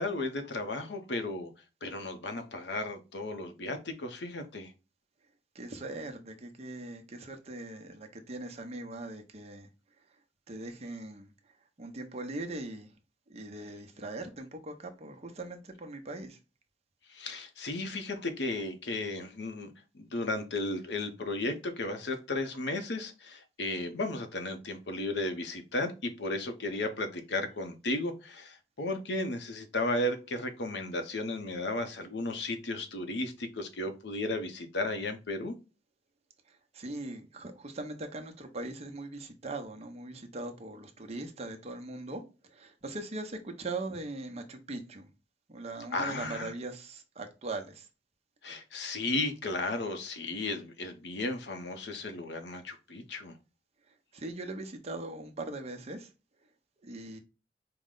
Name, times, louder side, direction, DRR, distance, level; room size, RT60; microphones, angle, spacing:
voice 1, 0.0-1.5 1.8-4.7 17.1-35.5 45.9-46.5 48.4-53.3, left 2 dB, 70° left, 0.7 m, -34 dB
voice 2, 5.5-9.7 10.5-11.3 11.8-12.9 13.3-16.4 36.5-45.1 45.5-47.9 53.9-56.1 56.8-57.2, right 2 dB, 40° right, 0.7 m, -40 dB
4.7 x 2.1 x 3.7 m
head